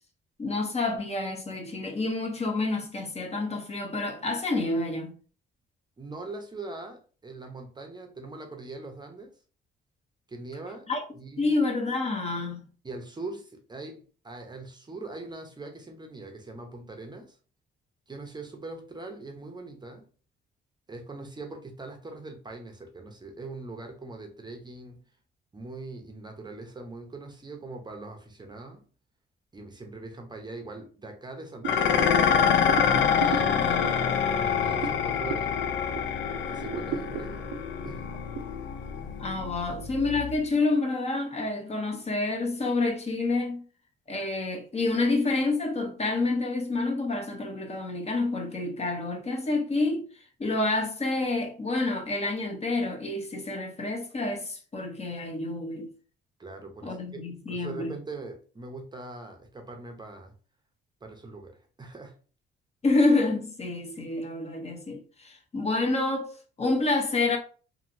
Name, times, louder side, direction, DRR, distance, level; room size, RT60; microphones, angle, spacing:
voice 1, 0.4-5.1 10.9-11.0 11.4-12.6 39.2-43.6 44.1-50.1 50.4-55.9 56.8-58.0 62.8-67.4, left 2 dB, 30° left, 0.8 m, -28 dB
voice 2, 6.0-9.4 10.3-10.9 11.2-11.6 12.8-17.4 18.1-20.1 20.9-25.0 25.5-28.8 29.5-35.7 36.5-37.5 37.8-38.0 56.4-60.3 61.0-62.2, right 3 dB, 20° right, 0.6 m, -42 dB
Dishes pots and pans, 31.6-40.5, left 7 dB, 70° left, 0.4 m, -26 dB
sound 1, 31.6-36.2 36.6-38.4, right 6 dB, 80° right, 0.5 m, -37 dB
2.8 x 2.6 x 2.6 m
cardioid pair, 90°, 20 cm